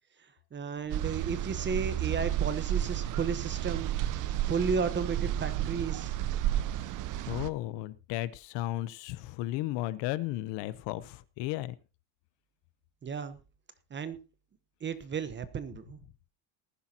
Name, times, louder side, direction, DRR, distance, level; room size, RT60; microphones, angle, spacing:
voice 1, 0.5-3.9 4.5-6.1 13.0-13.4 13.9-14.2 14.8-16.0, right 5 dB, 25° right, 13 dB, 1.0 m, -33 dB
sound 1, 0.9-7.5, right 12 dB, 45° right, 0.7 m, -32 dB
voice 2, 7.2-11.8, left 16 dB, 65° left, 16 dB, 0.9 m, -34 dB
19.0 x 10.5 x 2.9 m, 0.30 s
cardioid pair, 135°, 45 cm